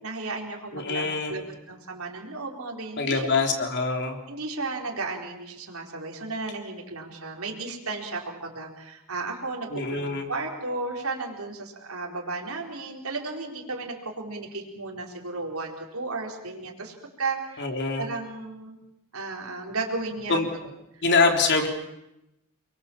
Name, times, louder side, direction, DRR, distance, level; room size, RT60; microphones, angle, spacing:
voice 1, 0.0-3.3 4.3-17.7 18.0-18.8 19.1-20.4, right 3 dB, 70° right, 0 dB, 4.4 m, -34 dB
voice 2, 0.7-1.4 3.0-4.2 9.7-10.3 17.6-18.1 20.3-20.5 21.0-21.7, left 4 dB, 55° left, 3 dB, 3.8 m, -24 dB
30.0 x 22.0 x 7.3 m, 0.89 s
head